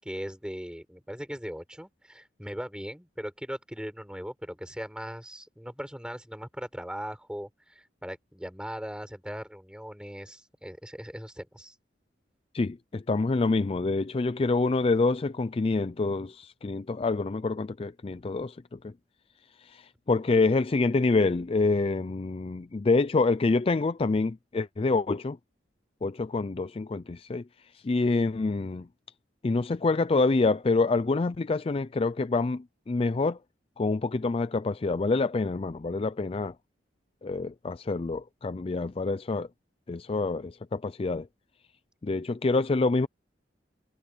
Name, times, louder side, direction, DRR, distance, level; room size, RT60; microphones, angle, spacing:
voice 1, 0.0-11.7, equal, 5° right, 6.3 m, -39 dB
voice 2, 12.5-18.9 19.6-25.4 26.0-27.4 27.7-28.9 29.4-33.4 33.8-36.5 37.2-39.5 39.9-41.3 42.0-43.1, left 3 dB, 30° left, 0.4 m, -27 dB
head